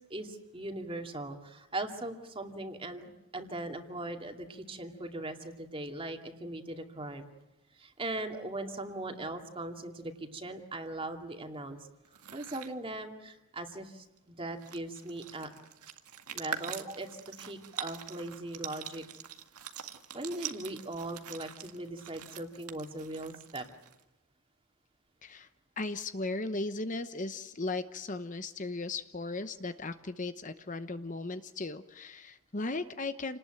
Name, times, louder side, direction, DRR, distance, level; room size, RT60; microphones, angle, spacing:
voice 1, 0.1-7.2 7.8-11.8 12.3-15.5 16.3-17.1 17.4-19.0 20.1-23.7, right 2 dB, 25° right, 5 dB, 2.4 m, -39 dB
sound 1, 12.0-12.7 14.2-14.3 14.5-24.0, right 8 dB, 90° right, 2.0 m, -44 dB
voice 2, 25.8-33.4, left 3 dB, 35° left, 10 dB, 0.9 m, -37 dB
29.0 x 19.5 x 9.1 m, 0.99 s
head